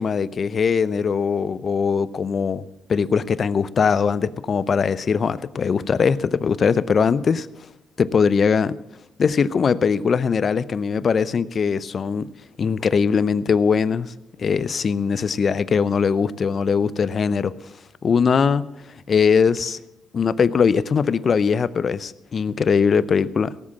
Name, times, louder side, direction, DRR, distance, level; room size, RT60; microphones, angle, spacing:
voice 1, 0.0-2.6 2.9-7.5 8.0-8.8 9.2-12.3 12.6-14.1 14.4-17.5 18.0-18.7 19.1-19.8 20.1-23.5, left 6 dB, 45° left, 0.6 m, -21 dB
17.5 x 7.6 x 7.3 m
cardioid pair, 90°, 0 cm